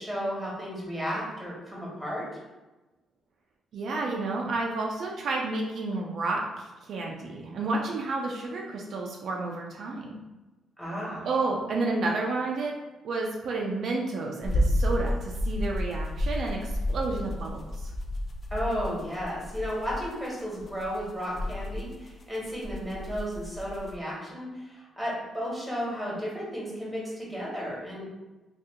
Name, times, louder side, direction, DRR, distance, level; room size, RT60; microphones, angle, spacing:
voice 1, 0.0-2.2 10.8-11.3 18.5-28.1, equal, 5° left, -6 dB, 1.4 m, -33 dB
voice 2, 3.7-10.1 11.2-12.8 13.0-17.9, right 3 dB, 60° right, -1 dB, 0.4 m, -31 dB
sound 1, 14.4-24.0, left 1 dB, 45° left, 0.4 m, -31 dB
2.8 x 2.4 x 3.6 m, 1.1 s
cardioid pair, 90°, 0 cm